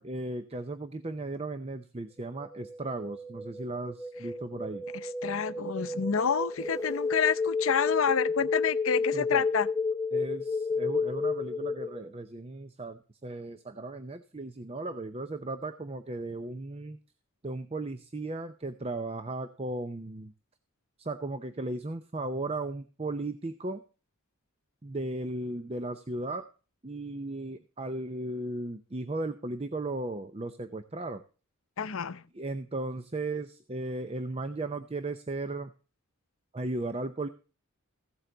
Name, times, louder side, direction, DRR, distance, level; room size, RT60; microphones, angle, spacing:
voice 1, 0.0-4.8 9.1-9.4 10.1-17.0 17.4-20.3 21.0-23.8 24.8-26.5 26.8-31.2 32.3-35.7 36.5-37.3, right 2 dB, 25° right, 0.6 m, -36 dB
sound 1, 2.2-12.1, left 4 dB, 15° left, 0.7 m, -32 dB
voice 2, 4.9-9.7 31.8-32.2, left 6 dB, 65° left, 0.6 m, -28 dB
15.0 x 8.0 x 3.9 m
head